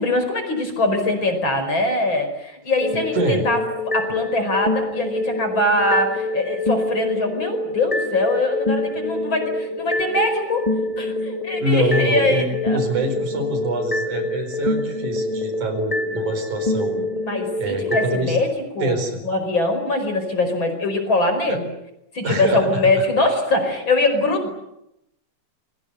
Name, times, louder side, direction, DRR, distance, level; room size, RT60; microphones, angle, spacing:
voice 1, 0.0-3.6 3.9-10.7 11.0-12.8 17.2-19.0 19.2-21.7 22.1-24.5, left 2 dB, 40° left, 6 dB, 5.7 m, -22 dB
sound 1, 2.8-18.2, left 2 dB, 15° left, 1.5 m, -26 dB
voice 2, 3.1-3.4 11.6-17.0 17.6-18.4 18.8-19.2 21.5-21.6 22.2-23.0, right 2 dB, 75° right, 8 dB, 6.0 m, -25 dB
28.5 x 23.5 x 8.0 m, 0.84 s
omnidirectional pair, 3.5 m